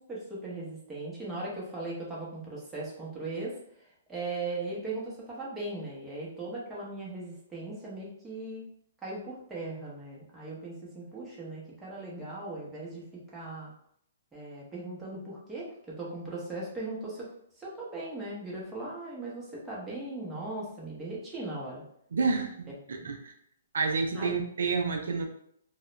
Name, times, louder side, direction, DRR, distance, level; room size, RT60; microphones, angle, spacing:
voice 1, 0.1-8.7 9.0-13.1 13.3-13.7 14.3-17.3 17.6-21.8 22.9-23.1 24.1-24.4, right 2 dB, 10° right, -6 dB, 0.8 m, -38 dB
voice 2, 22.1-23.3 23.7-25.3, right 4 dB, 80° right, 3 dB, 0.4 m, -29 dB
2.3 x 2.1 x 3.0 m, 0.69 s
hypercardioid pair, 150°, 0 cm